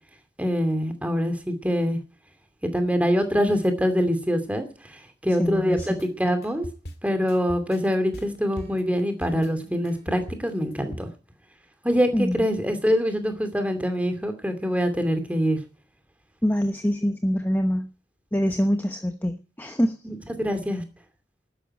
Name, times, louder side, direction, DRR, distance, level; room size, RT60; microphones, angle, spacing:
voice 1, 0.4-2.0 2.7-4.7 5.2-6.6 7.0-11.1 11.8-15.6 20.4-20.8, equal, 10° right, 6 dB, 2.5 m, -24 dB
voice 2, 5.4-6.0 12.1-12.5 16.4-17.9 18.3-20.0, equal, 10° left, 6 dB, 0.9 m, -25 dB
sound 1, 5.8-11.0, equal, 60° left, 2.4 m, -39 dB
12.5 x 10.5 x 9.9 m, 0.38 s
head